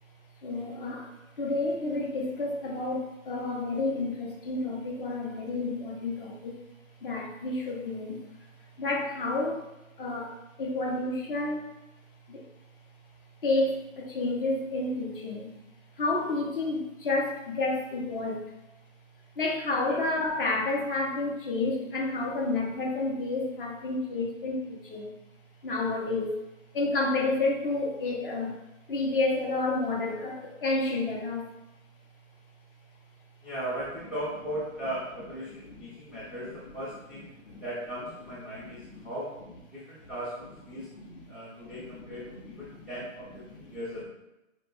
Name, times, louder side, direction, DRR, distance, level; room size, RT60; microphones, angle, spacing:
voice 1, 0.4-1.1 1.4-6.6 7.0-8.2 8.8-9.6 10.0-11.7 12.3-12.4 13.4-15.5 16.0-18.4 19.4-25.2 25.6-26.3 26.7-28.6 28.9-31.4 37.4-37.6 40.7-41.0 41.7-42.0 42.7-42.9, left 2 dB, 40° left, 0 dB, 0.6 m, -30 dB
voice 2, 33.4-39.3 39.7-40.9 41.3-44.0, right 1 dB, ahead, -9 dB, 0.5 m, -38 dB
4.4 x 2.9 x 2.5 m, 0.96 s
hypercardioid pair, 140°, 41 cm